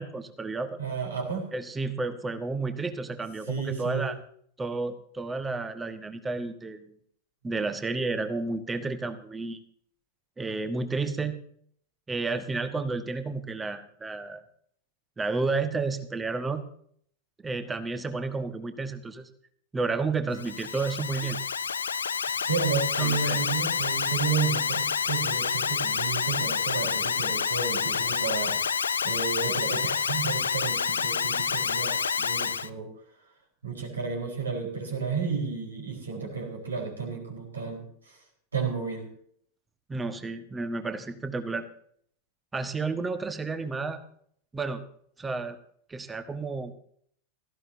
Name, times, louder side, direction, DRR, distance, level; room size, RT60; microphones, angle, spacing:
voice 1, 0.0-0.8 1.5-4.2 4.6-6.9 7.4-9.6 10.4-11.4 12.1-14.4 15.2-16.6 17.4-19.3 19.7-21.4 23.0-23.4 39.9-41.7 42.5-44.0 44.5-44.8 45.2-45.6 45.9-46.7, right 3 dB, 15° right, 10 dB, 1.4 m, -31 dB
voice 2, 0.8-1.5 3.5-4.1 22.4-28.6 29.0-32.9 33.6-38.2 38.5-39.1, right 5 dB, 75° right, 2 dB, 4.3 m, -32 dB
Alarm, 20.3-32.7, left 6 dB, 70° left, 0.5 m, -28 dB
17.5 x 14.0 x 2.7 m, 0.63 s
figure-of-eight pair, 90°, 0 cm